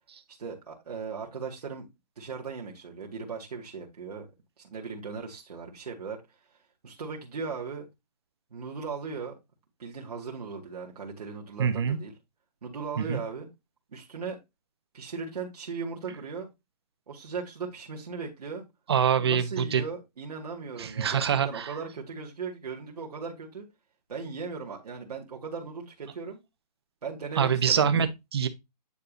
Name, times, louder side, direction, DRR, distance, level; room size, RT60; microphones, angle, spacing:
voice 1, 0.3-1.9 2.2-4.3 4.6-6.2 6.8-7.9 8.5-9.4 9.8-12.1 12.6-13.5 13.9-14.4 14.9-16.5 17.1-18.6 19.2-23.7 24.1-26.4 27.0-28.0, right 5 dB, 65° right, 2.2 m, -38 dB
voice 2, 11.6-12.0 13.0-13.2 18.9-19.8 20.8-21.7 27.4-28.5, right 7 dB, 40° right, 0.9 m, -25 dB
9.5 x 4.8 x 2.4 m
hypercardioid pair, 175°, 21 cm